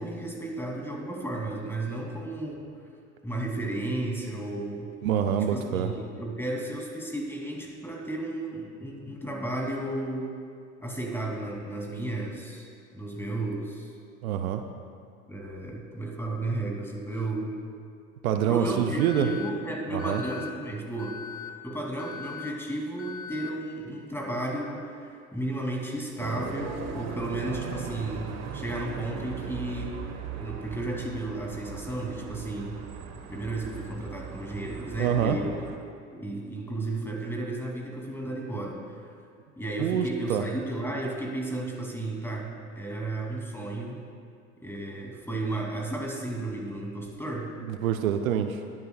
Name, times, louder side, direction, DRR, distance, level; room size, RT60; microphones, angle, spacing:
voice 1, 0.0-2.7 3.2-4.9 5.5-10.3 10.8-12.7 12.9-13.9 15.3-17.6 18.5-21.2 21.6-30.0 30.3-32.8 33.3-35.5 36.1-39.1 39.6-44.0 44.6-47.5, right 2 dB, 5° left, -1 dB, 2.8 m, -33 dB
voice 2, 5.0-5.9 14.2-14.6 18.2-19.3 19.9-20.2 35.0-35.4 39.8-40.4 47.7-48.7, right 9 dB, 75° right, 7 dB, 0.7 m, -26 dB
Alarm, 19.0-19.5 20.0-20.5 21.0-21.5 22.0-22.5 23.0-23.5, left 8 dB, 70° left, 1.3 m, -40 dB
sound 1, 26.2-35.8, right 6 dB, 40° right, 1.3 m, -39 dB
20.5 x 11.0 x 2.4 m, 2.4 s
figure-of-eight pair, 70°, 43 cm